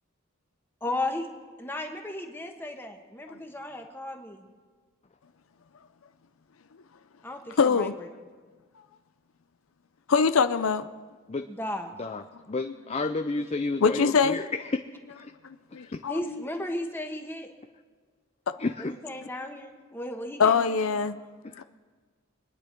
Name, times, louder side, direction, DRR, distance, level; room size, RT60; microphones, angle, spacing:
voice 1, 0.8-1.3 1.6-4.5 7.2-8.1 11.5-11.9 16.1-17.5 18.8-20.9, left 1 dB, 10° left, 1.3 m, -35 dB
voice 2, 7.6-7.9 10.1-10.9 12.6-12.7 13.8-14.4 15.4-16.4 20.4-21.2 21.6-21.7, left 5 dB, 80° left, 0.6 m, -23 dB
voice 3, 12.0-14.4 14.7-14.8 15.2-15.3 15.9-16.0 18.6-18.9 21.4-21.6, left 3 dB, 30° left, 0.5 m, -31 dB
25.5 x 10.0 x 4.5 m
head